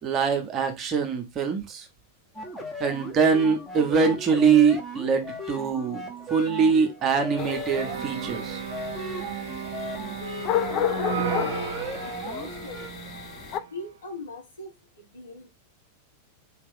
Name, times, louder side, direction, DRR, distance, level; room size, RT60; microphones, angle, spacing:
voice 1, 0.0-1.8 2.8-6.0 6.3-8.6, right 6 dB, 30° right, 1.0 m, -23 dB
sound 1, 2.3-12.9, right 1 dB, 5° left, 1.1 m, -37 dB
sound 2, 7.4-13.6, left 10 dB, 35° left, 0.4 m, -32 dB
sound 3, 7.8-13.7, right 8 dB, 60° right, 0.6 m, -34 dB
voice 2, 10.9-13.0 13.7-15.5, left 2 dB, 70° left, 1.5 m, -41 dB
4.2 x 2.8 x 3.6 m
figure-of-eight pair, 90°, 0 cm